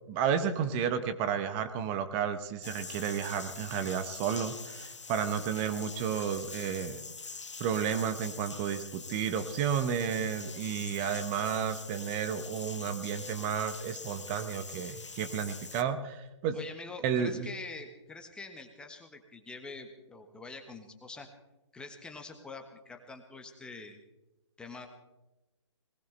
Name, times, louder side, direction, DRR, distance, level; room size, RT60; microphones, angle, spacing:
voice 1, 0.1-7.0 7.6-16.6 17.0-17.5, right 8 dB, 25° right, 10 dB, 1.0 m, -32 dB
sound 1, 2.6-15.8, left 4 dB, 75° left, 1.2 m, -44 dB
voice 2, 16.5-21.3 21.7-24.0 24.6-24.9, left 3 dB, 5° left, 5 dB, 1.4 m, -45 dB
20.0 x 19.5 x 3.4 m, 1.0 s
figure-of-eight pair, 130°, 15 cm